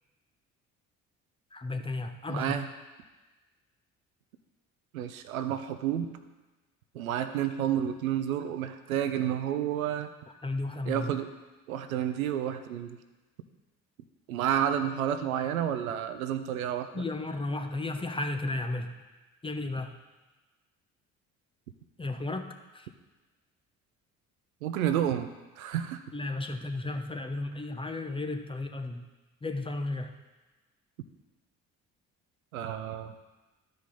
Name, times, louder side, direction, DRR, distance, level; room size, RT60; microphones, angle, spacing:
voice 1, 1.5-2.6 10.4-11.1 16.9-18.9 19.4-19.9 22.0-22.9 26.1-29.0 29.4-30.1, left 2 dB, 10° left, 5 dB, 0.7 m, -34 dB
voice 2, 2.3-2.7 4.9-6.1 6.9-10.1 10.9-11.3 11.7-13.0 14.3-17.1 24.6-25.3 25.6-26.0 32.5-33.1, right 10 dB, 75° right, 9 dB, 0.6 m, -30 dB
12.5 x 5.0 x 4.2 m, 1.2 s
figure-of-eight pair, 50°, 42 cm